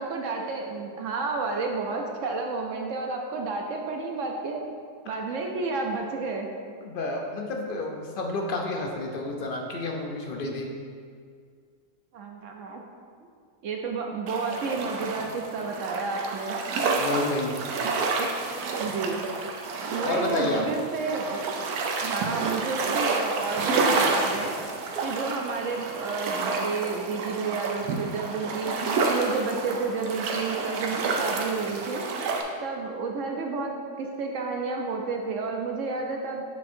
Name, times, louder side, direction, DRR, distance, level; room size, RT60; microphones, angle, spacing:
voice 1, 0.0-4.6 5.0-6.5 12.1-12.8 13.6-16.6 18.2-18.3 18.8-19.2 19.9-21.5 22.0-24.5 25.0-28.7 29.1-32.0 32.6-36.4, right 4 dB, 65° right, 1 dB, 0.9 m, -31 dB
voice 2, 6.8-10.7 17.0-17.6 20.0-20.6, left 2 dB, 55° left, 1 dB, 0.6 m, -30 dB
sound 1, 14.3-32.4, right 4 dB, 90° right, 1.2 m, -29 dB
7.4 x 3.6 x 4.3 m, 2.1 s
omnidirectional pair, 1.5 m